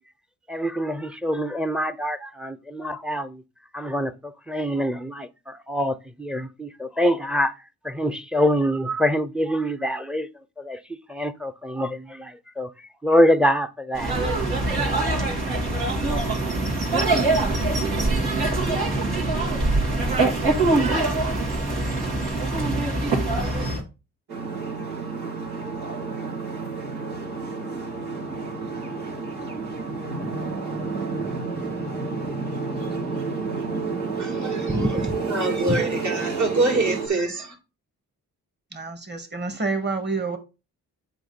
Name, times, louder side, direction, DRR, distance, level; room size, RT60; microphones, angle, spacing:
voice 1, 0.5-3.4 3.7-4.1 4.5-7.5 7.8-10.3 10.6-10.8 11.1-12.7 13.0-14.1, equal, ahead, 0.8 m, -25 dB
sound 1, 13.9-23.8, right 2 dB, 70° right, 2.8 m, -23 dB
sound 2, 24.3-37.1, right 4 dB, 85° right, 3.1 m, -30 dB
voice 2, 34.1-34.8 35.3-37.5, right 2 dB, 45° right, 2.9 m, -25 dB
voice 3, 38.7-40.4, right 2 dB, 25° right, 2.1 m, -27 dB
7.9 x 5.2 x 4.3 m
cardioid pair, 55°, 39 cm